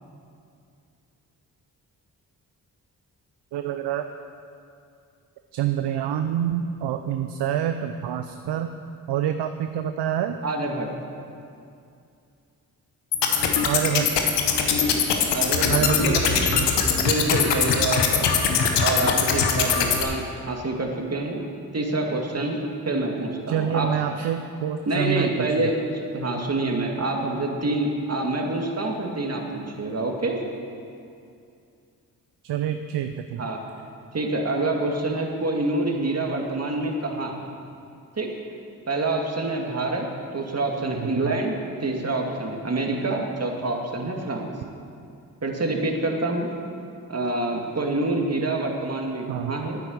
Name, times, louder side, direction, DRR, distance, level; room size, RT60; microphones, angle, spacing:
voice 1, 3.5-4.1 5.5-8.7 9.1-10.4 13.6-14.1 15.7-16.7 23.5-25.7 32.4-33.4 41.0-41.4 49.3-49.6, right 10 dB, 80° right, 8 dB, 0.6 m, -27 dB
voice 2, 10.4-10.9 15.3-16.3 17.0-18.3 18.8-21.4 21.7-22.6 22.9-24.3 24.9-30.4 33.4-33.6 34.1-37.5 38.2-38.3 38.9-44.5 45.4-46.5 47.1-49.8, right 2 dB, 35° right, 1 dB, 2.2 m, -26 dB
sound 1, 13.1-20.0, left 6 dB, 90° left, 1.1 m, -22 dB
9.7 x 9.1 x 7.9 m, 2.5 s
supercardioid pair, 45°, 41 cm